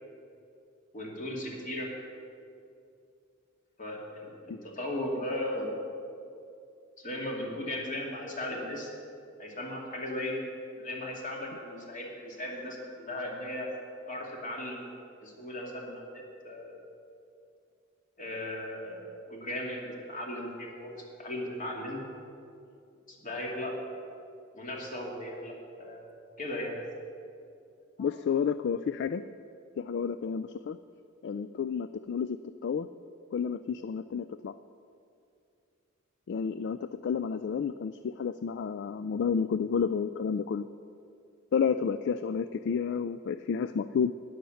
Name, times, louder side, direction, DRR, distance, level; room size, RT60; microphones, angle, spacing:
voice 1, 0.9-1.9 3.8-5.7 7.0-8.9 9.4-10.4 10.7-13.7 14.1-14.9 15.2-16.8 18.2-20.9 21.2-22.0 23.1-23.7 24.5-26.1 26.4-26.7 28.0-28.1, left 1 dB, 40° left, -1 dB, 2.4 m, -37 dB
voice 2, 28.0-29.2 29.8-30.8 31.2-32.9 33.3-34.5 36.3-40.7 41.5-44.1, left 6 dB, 55° left, 12 dB, 0.3 m, -31 dB
12.5 x 10.0 x 6.4 m, 2.5 s
head